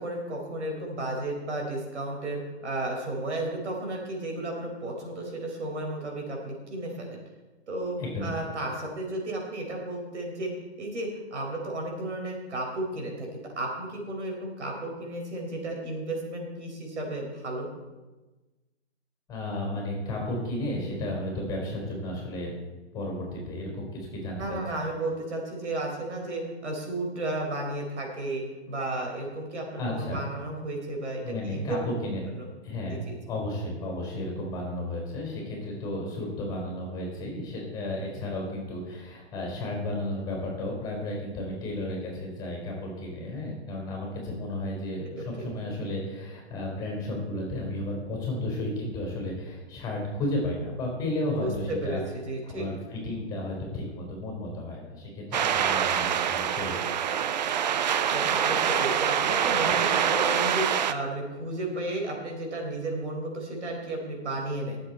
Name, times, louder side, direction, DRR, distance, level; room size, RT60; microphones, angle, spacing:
voice 1, 0.0-7.2 7.7-10.5 10.8-17.7 24.4-31.8 32.3-32.5 32.9-33.2 45.2-45.3 51.3-52.7 58.1-64.8, right 2 dB, 80° right, 1 dB, 4.4 m, -33 dB
voice 2, 8.0-8.3 19.3-22.5 22.9-24.6 29.8-30.2 31.2-32.3 32.6-52.0 52.5-56.8, left 1 dB, 10° left, -1 dB, 4.3 m, -33 dB
sound 1, 55.3-60.9, right 8 dB, 40° right, 0.6 m, -25 dB
19.5 x 7.7 x 4.4 m, 1.2 s
hypercardioid pair, 155°, 34 cm